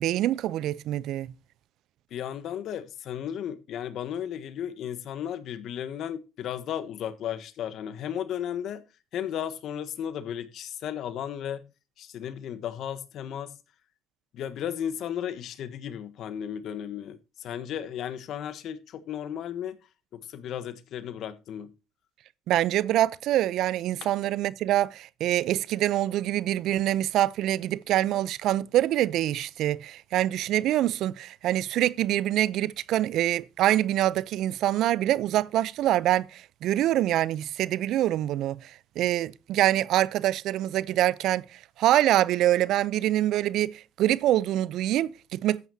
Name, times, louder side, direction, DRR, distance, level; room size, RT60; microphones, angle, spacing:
voice 1, 0.0-1.3 22.5-45.6, right 13 dB, 65° right, 0.6 m, -25 dB
voice 2, 2.1-8.8 9.1-11.6 12.0-13.6 14.3-19.8 20.1-21.7, left 9 dB, 60° left, 1.3 m, -34 dB
13.5 x 9.3 x 2.8 m
hypercardioid pair, 60°, 0 cm